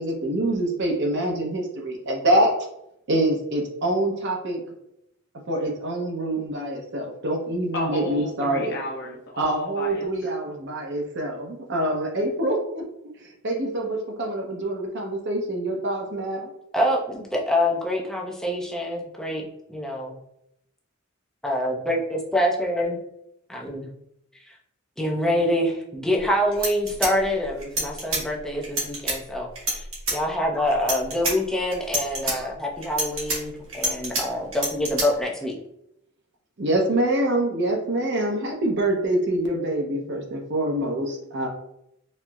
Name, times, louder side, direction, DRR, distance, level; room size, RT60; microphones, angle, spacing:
voice 1, 0.0-2.5 3.1-4.6 5.5-8.8 9.4-12.9 13.2-16.5 36.6-41.5, right 1 dB, 60° right, 1 dB, 0.7 m, -25 dB
voice 2, 7.7-10.3, left 1 dB, 55° left, 0 dB, 0.7 m, -33 dB
voice 3, 16.7-19.4 19.7-20.2 21.4-23.0 23.5-23.9 24.5-24.6 25.0-29.9 30.1-35.5, left 1 dB, 5° left, -2 dB, 0.5 m, -26 dB
sound 1, 26.2-26.3 26.5-28.2 28.6-29.2 29.6-30.2 30.7-31.3 31.7-32.4 32.8-34.2 34.5-35.1, right 2 dB, 75° right, 1.2 m, -26 dB
4.2 x 2.0 x 2.3 m, 0.78 s
head